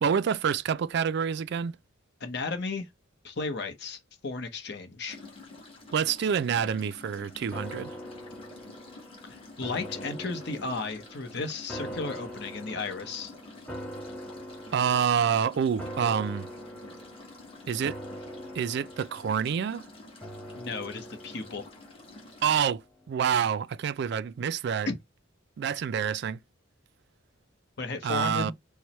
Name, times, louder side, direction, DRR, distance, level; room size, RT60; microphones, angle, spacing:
voice 1, 0.0-1.7 5.9-7.9 14.7-16.5 17.7-18.0 18.5-19.9 22.4-22.8 23.1-24.9 25.6-26.4 28.0-28.5, right 7 dB, 50° right, 0.3 m, -27 dB
voice 2, 2.2-2.9 3.2-5.2 9.3-13.3 20.5-21.7 24.9-25.0 27.8-28.5, left 3 dB, 50° left, 0.9 m, -34 dB
sound 1, 5.1-22.6, left 2 dB, 25° left, 1.5 m, -49 dB
sound 2, 7.5-22.8 23.2-23.3, equal, 5° left, 0.8 m, -43 dB
4.6 x 2.1 x 4.1 m
head